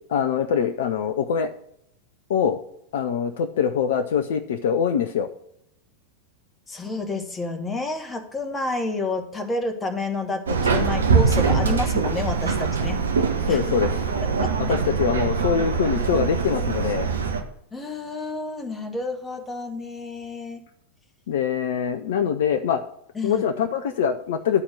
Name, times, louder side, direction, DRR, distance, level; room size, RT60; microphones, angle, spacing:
voice 1, 0.1-1.5 2.3-2.6 2.9-5.3 12.8-12.9 13.4-14.1 14.6-17.1 21.3-22.8 23.2-24.6, left 7 dB, 55° left, 8 dB, 0.5 m, -23 dB
voice 2, 6.7-13.0 13.5-13.6 14.4-14.5 17.7-20.6 23.1-23.4, left 2 dB, 15° left, 5 dB, 1.2 m, -29 dB
Subway metro underground, 10.5-17.4, right 5 dB, 70° right, 1.0 m, -23 dB
9.9 x 4.3 x 6.1 m, 0.74 s
figure-of-eight pair, 90°, 0 cm